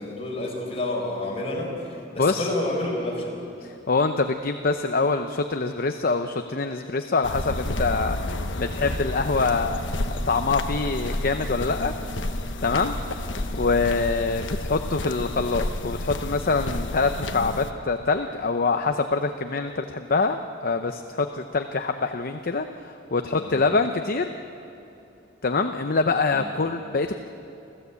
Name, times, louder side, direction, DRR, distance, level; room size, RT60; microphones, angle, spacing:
voice 1, 0.0-3.4 12.6-12.9 23.4-23.7 26.3-26.5, left 1 dB, 35° left, -1 dB, 5.2 m, -30 dB
voice 2, 2.2-2.5 3.6-8.2 8.6-11.9 12.6-13.3 13.6-24.3 25.4-27.2, left 4 dB, 50° left, 7 dB, 0.8 m, -25 dB
sound 1, 7.2-17.7, left 1 dB, 75° left, 1.2 m, -30 dB
29.5 x 14.5 x 8.3 m, 2.8 s
head